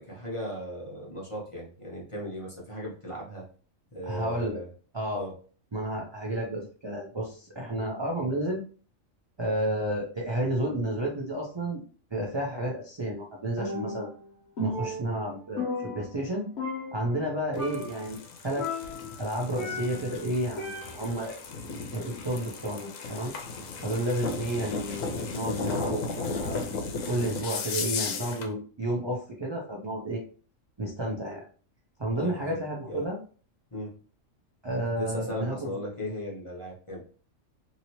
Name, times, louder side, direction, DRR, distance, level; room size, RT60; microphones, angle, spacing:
voice 1, 0.0-3.5 3.9-4.7 5.1-5.4 5.9-6.0 32.1-32.6 32.9-33.1 33.7-34.0 35.0-37.0, left 1 dB, 30° left, -4 dB, 0.8 m, -37 dB
voice 2, 4.1-4.6 4.9-5.2 5.7-8.6 9.4-11.8 12.1-14.1 14.6-16.5 16.9-18.2 18.4-18.7 19.2-21.4 21.9-23.3 23.8-26.7 27.1-30.2 30.8-31.5 32.0-33.2 34.6-35.6, right 1 dB, 35° right, -2 dB, 0.4 m, -31 dB
Percussion, 13.6-14.3 14.6-16.3 16.6-17.3 17.6-18.1 18.6-20.1 20.6-21.2, left 2 dB, 55° left, 1.2 m, -35 dB
sound 1, 17.5-28.5, left 4 dB, 85° left, 1.0 m, -35 dB
2.8 x 2.8 x 2.9 m, 0.40 s
omnidirectional pair, 1.4 m